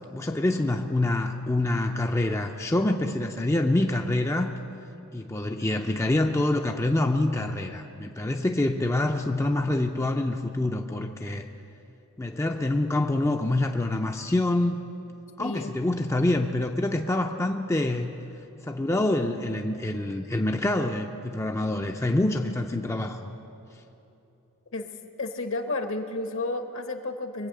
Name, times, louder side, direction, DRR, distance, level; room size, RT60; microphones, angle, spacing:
voice 1, 0.1-4.5 5.1-11.4 12.2-14.8 15.4-18.1 18.6-23.3, left 1 dB, 15° left, 4 dB, 0.4 m, -26 dB
voice 2, 15.4-15.8 24.7-24.9 25.2-27.5, left 2 dB, 60° left, 7 dB, 1.1 m, -31 dB
23.0 x 8.4 x 6.6 m, 3.0 s
head